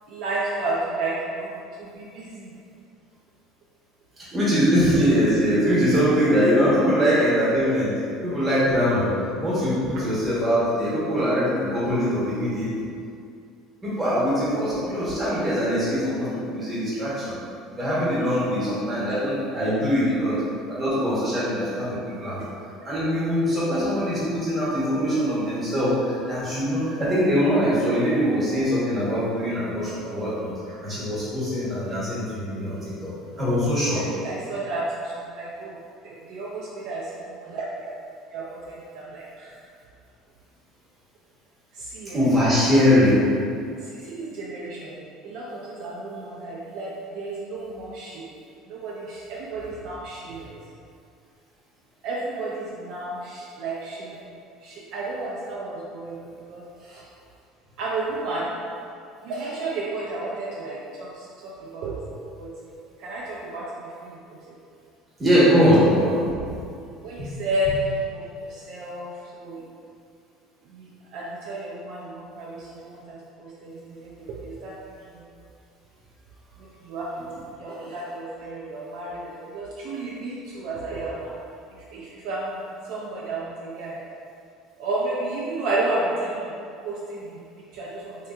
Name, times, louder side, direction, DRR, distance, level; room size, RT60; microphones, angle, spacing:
voice 1, 0.1-1.5 1.8-2.5 33.9-35.8 36.0-37.6 38.3-39.5 41.8-42.2 43.8-48.3 48.7-50.5 52.0-54.2 54.6-57.0 57.8-58.5 59.2-61.9 62.4-62.5 63.0-64.2 67.0-68.2 68.5-69.6 70.7-70.9 71.1-74.8 75.1-75.2 76.6-77.2 77.6-81.3 81.9-82.5 82.9-84.0 84.8-86.5 86.8-87.4 87.7-88.2, right 2 dB, 55° right, -5 dB, 0.3 m, -32 dB
voice 2, 4.3-12.7 13.8-17.3 17.8-20.4 20.7-22.4 22.8-30.5 30.8-34.0 42.1-43.2 65.2-66.5 67.2-67.4 77.1-77.2, equal, 15° right, -10 dB, 1.0 m, -22 dB
3.3 x 2.7 x 2.3 m, 2.4 s
cardioid pair, 165°, 0 cm